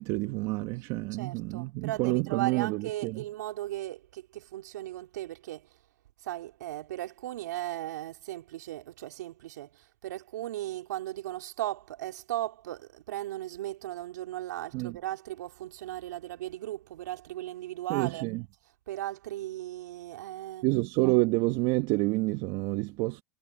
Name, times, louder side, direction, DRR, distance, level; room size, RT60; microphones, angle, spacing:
voice 1, 0.0-3.2 14.7-15.0 17.9-18.4 20.6-23.2, right 22 dB, 65° right, 1.4 m, -28 dB
voice 2, 1.1-5.8 6.2-18.3 18.9-20.7, right 14 dB, 85° right, 3.4 m, -37 dB
hypercardioid pair, 95°, 9 cm